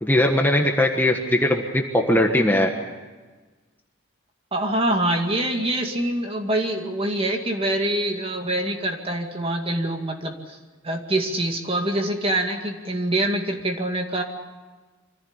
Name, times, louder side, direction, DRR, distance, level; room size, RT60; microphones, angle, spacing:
voice 1, 0.0-2.7, left 1 dB, 10° left, 2 dB, 1.4 m, -20 dB
voice 2, 4.5-10.6 10.8-14.2, right 1 dB, 25° right, 4 dB, 2.2 m, -25 dB
25.0 x 15.5 x 9.7 m, 1.3 s
head